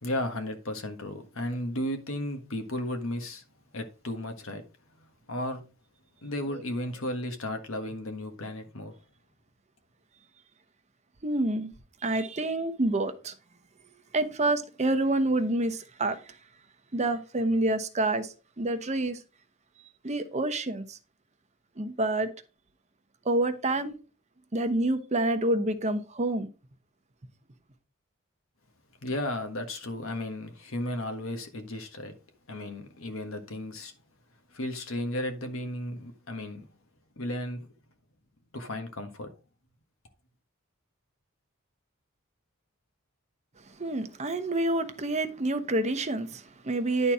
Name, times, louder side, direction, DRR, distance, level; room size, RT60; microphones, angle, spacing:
voice 1, 0.0-3.4 3.7-4.6 5.0-5.6 6.2-8.9 29.0-32.2 32.5-33.9 34.5-36.6 37.2-37.7 38.5-39.3, left 1 dB, 65° left, 1.5 m, -34 dB
voice 2, 11.2-11.7 12.0-13.3 14.1-16.4 16.9-19.2 20.0-21.0 21.8-22.3 23.2-24.0 24.5-26.5 43.8-47.1, right 2 dB, 30° right, 0.9 m, -28 dB
10.5 x 4.3 x 4.8 m
head